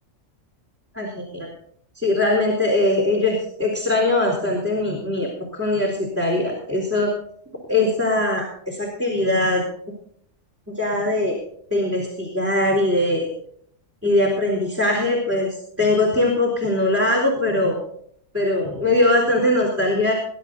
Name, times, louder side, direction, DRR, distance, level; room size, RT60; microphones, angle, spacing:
voice 1, 0.9-1.5 2.0-7.1 7.7-9.6 10.8-11.4 11.7-13.3 14.0-17.8 18.3-20.1, left 2 dB, 10° right, 0 dB, 3.9 m, -21 dB
21.5 x 11.0 x 4.0 m, 0.63 s
omnidirectional pair, 1.3 m